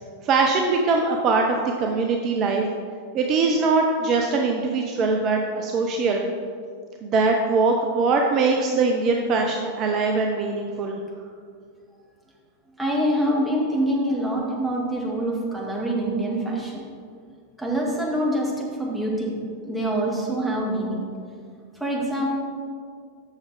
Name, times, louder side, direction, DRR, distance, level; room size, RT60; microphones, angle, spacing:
voice 1, 0.2-2.6 3.1-6.3 7.0-11.0, right 4 dB, 35° right, 2 dB, 0.6 m, -22 dB
voice 2, 12.8-16.8 17.6-19.4 19.7-21.1 21.8-22.3, right 1 dB, 5° right, -4 dB, 2.0 m, -25 dB
7.3 x 6.3 x 4.9 m, 2.1 s
figure-of-eight pair, 90°, 0 cm